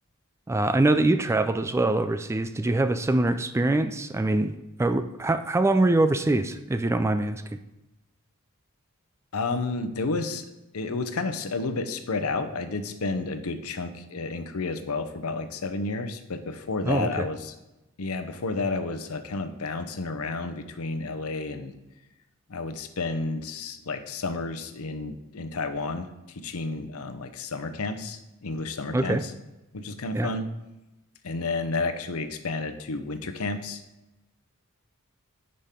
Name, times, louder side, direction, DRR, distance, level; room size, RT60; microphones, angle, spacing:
voice 1, 0.5-7.4 16.8-17.3 28.9-29.2 30.1-30.3, right 2 dB, 10° right, 10 dB, 0.3 m, -24 dB
voice 2, 9.3-10.5 10.7-17.5 18.0-21.7 22.5-29.3 29.7-30.5 31.2-33.8, left 3 dB, 80° left, 9 dB, 0.7 m, -31 dB
9.8 x 5.3 x 3.7 m, 0.97 s
head